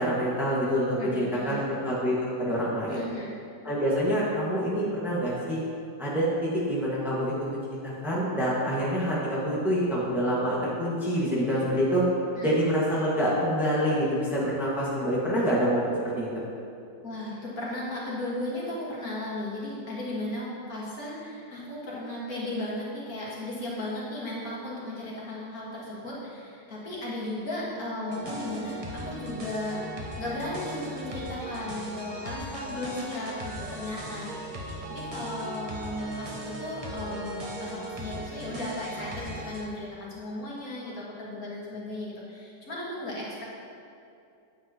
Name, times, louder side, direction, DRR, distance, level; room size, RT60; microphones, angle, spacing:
voice 1, 0.0-3.0 3.6-5.6 6.0-12.0 12.4-16.3, equal, ahead, -7 dB, 1.4 m, -26 dB
voice 2, 1.0-1.7 2.9-3.3 12.4-12.5 17.0-29.8 30.2-43.4, left 1 dB, 60° left, -6 dB, 2.1 m, -35 dB
sound 1, 28.1-39.7, right 1 dB, 30° right, 0.7 m, -38 dB
9.8 x 8.4 x 2.9 m, 2.5 s
omnidirectional pair, 1.8 m